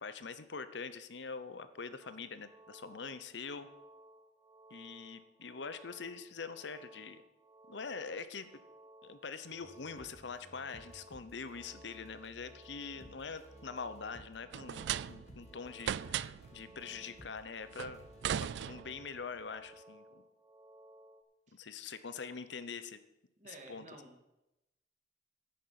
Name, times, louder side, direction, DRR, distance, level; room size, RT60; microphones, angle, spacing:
voice 1, 0.0-3.7 4.7-7.2 7.7-8.5 9.0-18.0 18.4-20.2 21.5-23.0 23.5-23.9, left 5 dB, 70° left, 12 dB, 0.8 m, -44 dB
sound 1, 2.0-21.2, right 1 dB, 5° right, 1.1 m, -59 dB
sound 2, 9.5-18.6, equal, 35° left, 1.6 m, -58 dB
sound 3, 14.5-15.4 15.8-16.6 17.7-19.2, right 9 dB, 70° right, 0.3 m, -37 dB
voice 2, 23.4-24.2, right 2 dB, 40° right, 1 dB, 2.5 m, -53 dB
10.5 x 9.3 x 5.9 m, 0.92 s
head